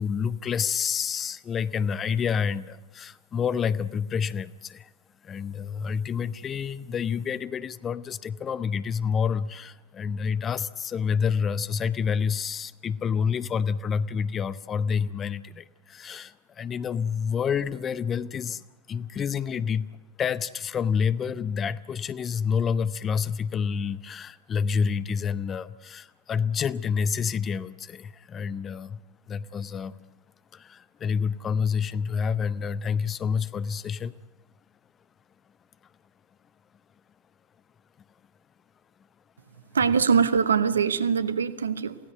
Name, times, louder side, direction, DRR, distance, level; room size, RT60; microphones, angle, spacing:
voice 1, 0.0-4.9 5.2-18.6 18.9-19.9 20.2-29.0 29.3-30.0 30.5-34.1, left 6 dB, 25° left, 0.7 m, -28 dB
voice 2, 39.7-42.0, right 6 dB, 70° right, 1.0 m, -23 dB
27.5 x 16.5 x 9.2 m
figure-of-eight pair, 90°, 0 cm